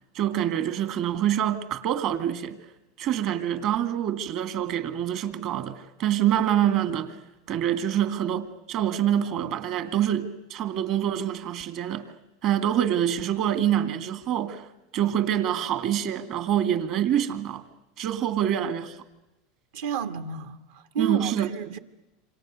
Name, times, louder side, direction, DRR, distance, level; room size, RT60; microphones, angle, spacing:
voice 1, 0.1-2.6 3.0-7.2 7.5-12.1 12.4-14.7 14.9-17.6 18.0-19.0 21.0-21.5, right 10 dB, 55° right, 2.1 m, -26 dB
voice 2, 19.7-21.8, right 6 dB, 75° right, 1.5 m, -31 dB
27.5 x 26.0 x 6.5 m
hypercardioid pair, 105°, 0 cm